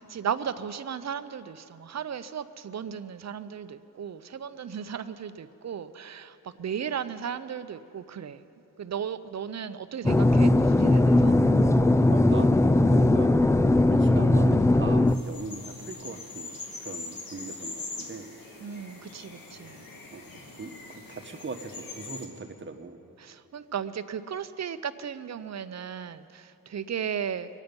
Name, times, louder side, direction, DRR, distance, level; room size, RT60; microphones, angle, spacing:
voice 1, 0.0-8.4 8.8-11.3 18.6-19.9 23.2-27.5, right 8 dB, 50° right, 12 dB, 0.7 m, -35 dB
sound 1, 10.0-15.2, left 2 dB, 10° left, 0.4 m, -20 dB
voice 2, 12.1-13.4 13.9-18.3 20.1-23.0, right 4 dB, 35° right, 6 dB, 1.2 m, -40 dB
sound 2, 15.1-22.3, left 3 dB, 70° left, 2.1 m, -42 dB
24.0 x 9.3 x 5.3 m, 2.8 s
cardioid pair, 70°, 35 cm